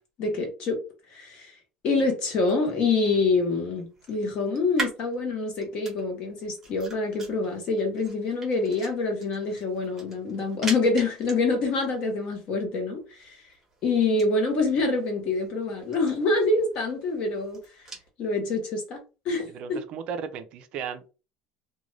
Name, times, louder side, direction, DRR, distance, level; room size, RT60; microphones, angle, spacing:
voice 1, 0.2-0.8 1.1-1.5 1.8-13.4 13.8-17.6 18.2-19.8, left 3 dB, 40° left, 1.0 m, -26 dB
sound 1, 2.3-18.1, right 3 dB, 10° right, 1.0 m, -43 dB
voice 2, 19.5-21.1, right 7 dB, 40° right, 0.4 m, -35 dB
2.5 x 2.2 x 3.1 m
cardioid pair, 180°, 3 cm